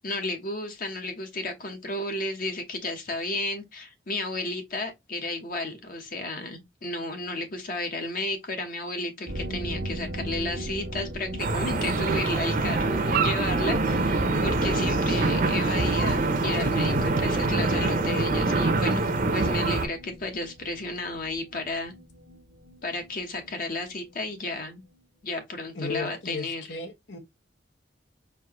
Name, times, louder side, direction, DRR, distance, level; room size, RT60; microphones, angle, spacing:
voice 1, 0.0-21.9 22.8-24.8 25.2-26.6, left 2 dB, 50° left, 1.0 m, -33 dB
sound 1, 9.3-24.7 24.9-25.0 25.3-25.4, right 1 dB, 85° right, 1.1 m, -40 dB
sound 2, 11.4-19.9, right 3 dB, 50° right, 0.7 m, -24 dB
voice 2, 25.7-27.2, left 3 dB, 80° left, 1.1 m, -35 dB
4.6 x 2.7 x 2.9 m
head